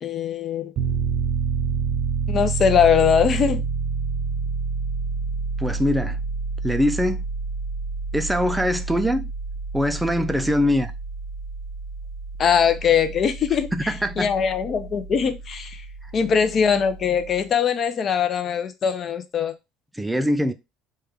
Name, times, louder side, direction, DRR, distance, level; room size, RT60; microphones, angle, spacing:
voice 1, 0.0-0.7 2.3-3.6 12.4-15.8 16.1-19.5, left 7 dB, 45° left, 0.5 m, -21 dB
Piano, 0.8-17.4, right 4 dB, 55° right, 0.6 m, -29 dB
voice 2, 5.6-6.2 6.6-7.2 8.1-9.3 9.7-10.9 13.7-14.3 19.9-20.5, equal, 5° right, 0.4 m, -22 dB
3.2 x 2.3 x 3.4 m
supercardioid pair, 90°, 0 cm